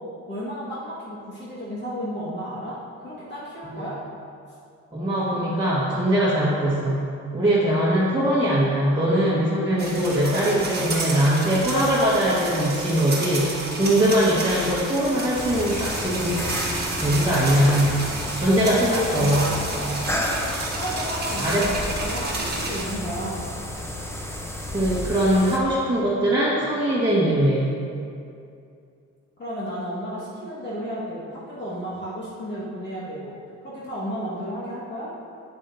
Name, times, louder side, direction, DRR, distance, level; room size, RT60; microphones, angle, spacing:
voice 1, 0.3-4.0 18.5-20.3 20.7-21.4 21.7-23.5 29.4-33.3 33.6-35.2, equal, 35° left, -8 dB, 1.8 m, -33 dB
voice 2, 4.9-7.0 7.3-16.4 16.7-18.0 18.4-19.5 21.4-21.7 24.7-27.7, right 1 dB, 15° right, -10 dB, 1.5 m, -21 dB
sound 1, 9.8-22.8, right 2 dB, 30° right, 1.4 m, -31 dB
sound 2, 15.3-25.6, left 1 dB, 10° left, 0.8 m, -32 dB
8.5 x 7.2 x 2.7 m, 2.5 s
cardioid pair, 90°, 30 cm